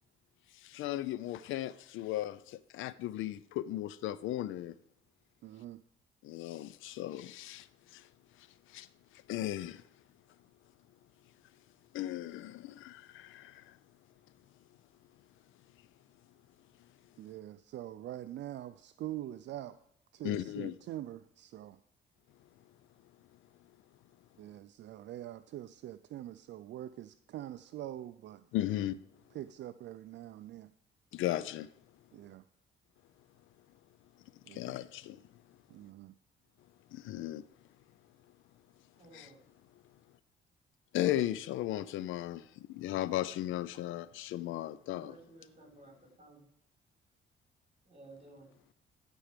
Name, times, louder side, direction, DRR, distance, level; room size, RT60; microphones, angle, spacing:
voice 1, 0.5-4.7 6.2-8.1 8.4-8.9 9.1-9.8 11.9-13.8 20.2-20.8 28.5-29.0 31.1-31.7 34.5-35.2 36.9-37.5 39.1-39.3 40.9-45.1, left 13 dB, 85° left, 0.5 m, -36 dB
voice 2, 5.4-5.8 17.2-19.8 20.1-21.8 24.4-28.9 29.3-30.7 32.1-32.4 34.4-34.8 35.7-36.2, right 13 dB, 65° right, 0.4 m, -44 dB
voice 3, 39.0-39.4 44.9-46.5 47.8-48.5, right 2 dB, 30° right, 4.6 m, -55 dB
13.5 x 4.6 x 5.0 m
cardioid pair, 90°, 20 cm